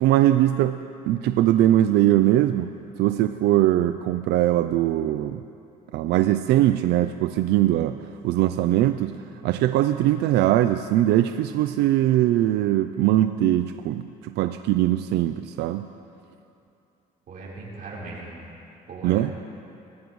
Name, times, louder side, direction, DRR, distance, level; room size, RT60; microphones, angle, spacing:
voice 1, 0.0-0.8 1.1-2.7 3.0-5.4 5.9-8.0 8.2-9.2 9.4-15.9 19.0-19.3, right 13 dB, 80° right, 10 dB, 0.4 m, -21 dB
voice 2, 17.3-18.4 18.9-19.4, right 3 dB, 60° right, -5 dB, 4.0 m, -38 dB
23.0 x 14.5 x 3.1 m, 2.7 s
cardioid pair, 110°, 17 cm